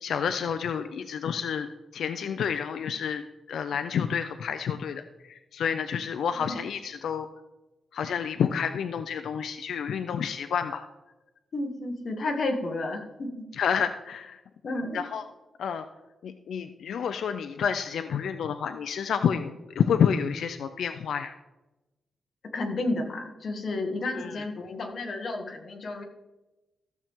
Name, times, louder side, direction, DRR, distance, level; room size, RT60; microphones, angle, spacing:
voice 1, 0.0-1.7 1.9-7.3 7.9-10.9 13.5-14.4 14.9-15.2 15.6-15.8 16.2-21.3 24.2-24.4, left 7 dB, 80° left, 9 dB, 0.5 m, -29 dB
voice 2, 11.5-13.4 14.6-15.0 22.5-26.0, left 2 dB, 45° left, 3 dB, 1.4 m, -31 dB
14.5 x 7.0 x 3.6 m, 1.1 s
wide cardioid pair, 175°, 0 cm